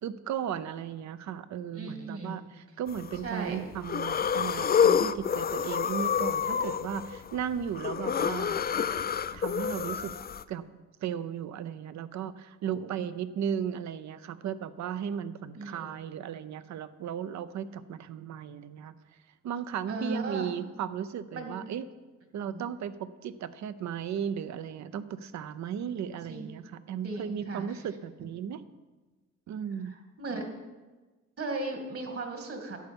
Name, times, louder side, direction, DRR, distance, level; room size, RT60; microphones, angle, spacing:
voice 1, 0.0-8.6 9.3-10.1 10.5-10.6 11.0-19.0 19.4-21.8 22.3-28.6 29.5-29.9, right 8 dB, 65° right, 14 dB, 0.7 m, -35 dB
voice 2, 1.7-2.4 3.2-3.6 15.5-16.0 19.9-20.5 21.3-21.8 22.5-22.6 26.2-26.5 27.0-27.8 29.8-30.5 31.4-32.8, right 2 dB, 50° right, 4 dB, 2.3 m, -36 dB
sound 1, 2.9-3.3 3.7-10.4, left 7 dB, 30° left, 0.5 m, -28 dB
11.0 x 8.0 x 5.4 m, 1.2 s
cardioid pair, 90°, 30 cm